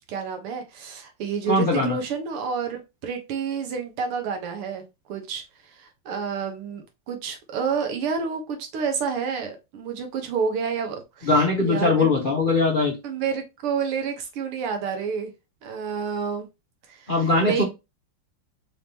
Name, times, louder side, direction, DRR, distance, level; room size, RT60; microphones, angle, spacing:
voice 1, 0.1-4.8 5.1-5.4 5.8-12.1 13.0-15.3 15.6-16.5 16.9-17.1 17.4-17.6, right 6 dB, 85° right, 2.0 m, -29 dB
voice 2, 1.5-2.0 11.3-13.0 17.1-17.6, left 2 dB, 50° left, 0.6 m, -21 dB
4.8 x 3.5 x 2.8 m
omnidirectional pair, 2.4 m